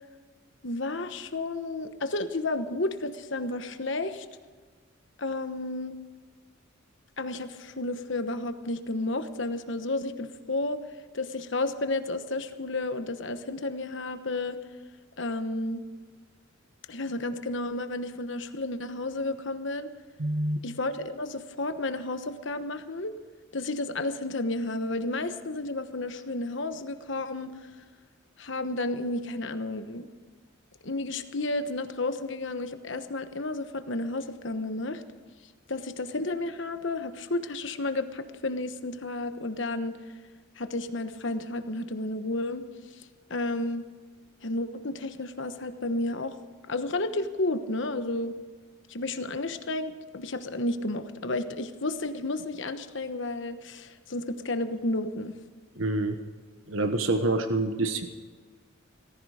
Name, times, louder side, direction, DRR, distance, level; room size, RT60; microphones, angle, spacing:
voice 1, 0.6-4.2 5.2-6.0 7.2-10.8 11.1-14.6 15.2-15.8 16.9-19.9 20.6-23.1 23.5-27.6 28.4-30.1 30.8-35.0 35.7-40.0 40.6-42.7 43.3-43.8 44.4-46.3 46.7-48.3 48.9-55.4, left 2 dB, 60° left, 9 dB, 1.1 m, -32 dB
voice 2, 20.2-20.6 55.8-56.2 56.7-58.1, right 2 dB, 70° right, 7 dB, 1.2 m, -27 dB
17.5 x 15.5 x 5.0 m, 1.5 s
head